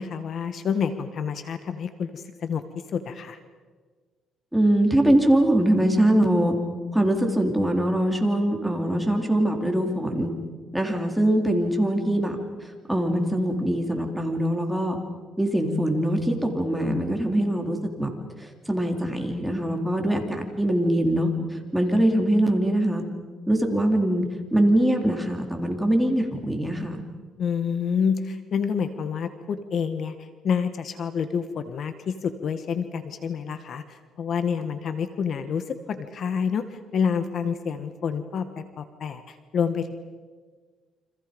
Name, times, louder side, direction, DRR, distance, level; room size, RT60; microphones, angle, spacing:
voice 1, 0.0-2.6 2.9-3.4 27.4-39.9, left 6 dB, 55° left, 10 dB, 1.6 m, -28 dB
voice 2, 4.5-6.5 6.9-10.3 10.7-12.4 12.9-15.0 15.4-18.1 18.7-21.3 21.7-23.0 23.5-24.3 24.5-27.0, right 1 dB, 5° right, 3 dB, 3.8 m, -22 dB
29.5 x 26.0 x 5.4 m, 1.5 s
cardioid pair, 110°, 0 cm